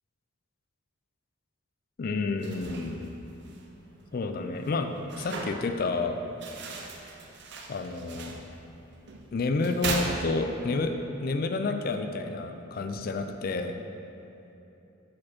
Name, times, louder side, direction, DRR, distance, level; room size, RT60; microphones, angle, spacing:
voice 1, 2.0-3.1 4.1-4.9 5.2-6.2 7.7-8.4 9.3-10.9 11.2-13.7, left 3 dB, 45° left, 6 dB, 0.4 m, -29 dB
sound 1, 2.3-10.8, right 3 dB, 55° right, 0.7 m, -39 dB
7.5 x 4.3 x 4.3 m, 3.0 s
head